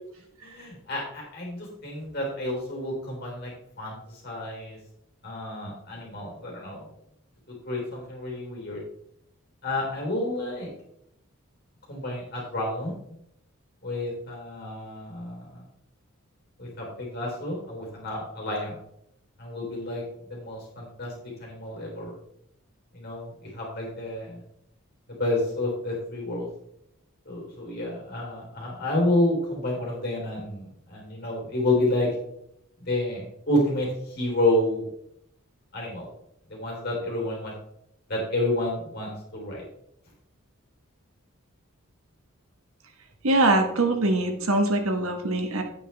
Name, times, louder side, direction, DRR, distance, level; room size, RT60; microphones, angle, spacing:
voice 1, 0.4-3.5 3.8-4.0 4.2-4.8 5.2-6.8 7.7-8.8 9.6-10.7 11.9-12.9 13.8-15.6 16.6-18.8 19.4-20.0 20.3-21.1 21.4-22.1 22.9-24.4 25.1-26.5 27.3-32.1 32.8-34.9 35.7-36.0 36.5-37.5 38.1-39.6, left 1 dB, 45° left, -2 dB, 3.7 m, -29 dB
voice 2, 43.2-45.6, right 2 dB, 75° right, 5 dB, 1.4 m, -23 dB
9.1 x 8.7 x 3.4 m, 0.75 s
head